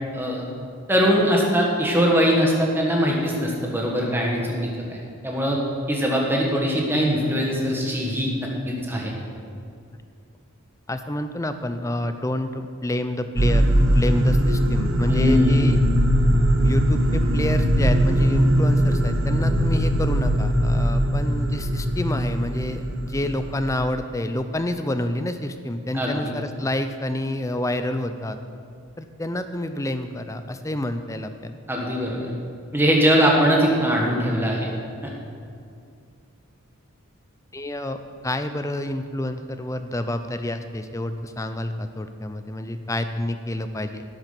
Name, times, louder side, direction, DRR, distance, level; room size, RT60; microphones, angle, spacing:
voice 1, 0.9-5.0 5.2-5.6 5.9-8.4 8.7-9.1 15.1-15.6 25.9-26.2 31.7-32.3 32.7-34.7, equal, 10° right, -1 dB, 1.6 m, -21 dB
voice 2, 10.9-15.8 16.6-28.4 29.0-31.5 37.5-44.0, left 1 dB, 15° left, 9 dB, 0.5 m, -28 dB
sound 1, 13.4-23.8, equal, 75° right, 1.3 m, -20 dB
12.0 x 9.2 x 5.9 m, 2.4 s
head